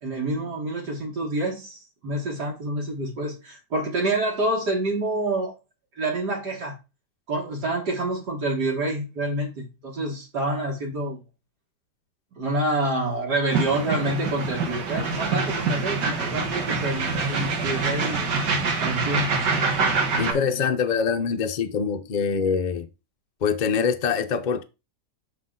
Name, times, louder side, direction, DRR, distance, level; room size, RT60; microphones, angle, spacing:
voice 1, 0.0-5.5 6.0-6.8 7.3-11.2 12.3-18.3 18.8-19.3 20.1-20.6, right 2 dB, 75° right, 2.2 m, -27 dB
sound 1, 13.5-20.3, right 4 dB, 90° right, 2.0 m, -25 dB
voice 2, 20.2-22.9 23.4-24.6, left 6 dB, 60° left, 0.4 m, -24 dB
6.0 x 5.8 x 3.8 m
omnidirectional pair, 1.8 m